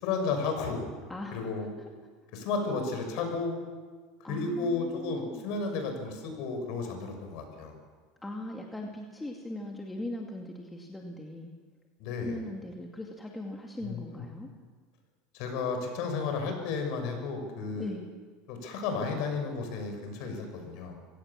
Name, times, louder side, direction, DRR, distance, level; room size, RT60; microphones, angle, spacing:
voice 1, 0.0-0.9 1.3-1.7 2.3-3.6 4.2-7.7 12.0-12.4 13.8-14.2 15.3-17.9 18.5-21.0, left 4 dB, 60° left, 5 dB, 6.3 m, -33 dB
voice 2, 4.2-5.4 8.2-11.5 12.2-14.5 17.7-18.1, left 1 dB, 10° left, 1 dB, 2.2 m, -39 dB
25.0 x 17.5 x 7.4 m, 1.5 s
supercardioid pair, 130°, 0 cm